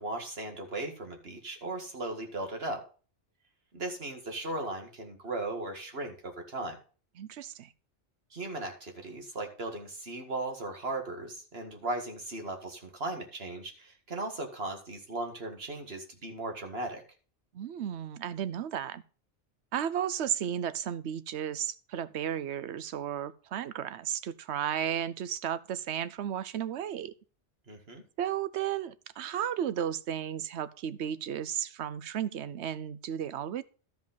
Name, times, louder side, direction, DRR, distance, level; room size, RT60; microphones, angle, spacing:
voice 1, 0.0-2.8 3.7-6.8 8.3-17.0 27.7-28.0, right 2 dB, 60° right, 2.1 m, -37 dB
voice 2, 7.2-7.7 17.5-19.0 19.7-27.1 28.2-33.6, right 9 dB, 75° right, 1.0 m, -34 dB
12.5 x 5.4 x 5.1 m
omnidirectional pair, 1.2 m